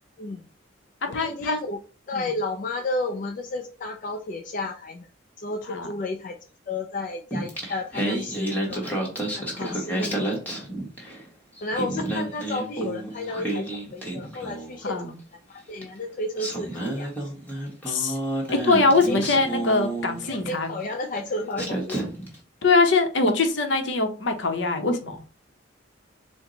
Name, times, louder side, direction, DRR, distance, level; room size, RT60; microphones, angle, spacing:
voice 1, 0.2-0.5 1.1-1.8 2.1-5.1 5.4-6.4 6.7-9.0 9.3-10.2 11.6-15.0 15.5-17.3 19.1-19.2 20.2-22.0, left 2 dB, 40° left, 0.4 m, -32 dB
voice 2, 1.1-1.6 2.1-2.3 5.7-5.9 9.5-9.8 14.9-15.2 17.9-18.2 18.5-20.7 22.6-25.2, left 3 dB, 65° left, 0.8 m, -23 dB
Singing, 7.3-11.3 11.6-14.8 15.8-15.9 16.4-20.6 21.2-21.3 21.5-22.4, right 1 dB, 10° left, 1.1 m, -30 dB
4.4 x 2.2 x 3.8 m
head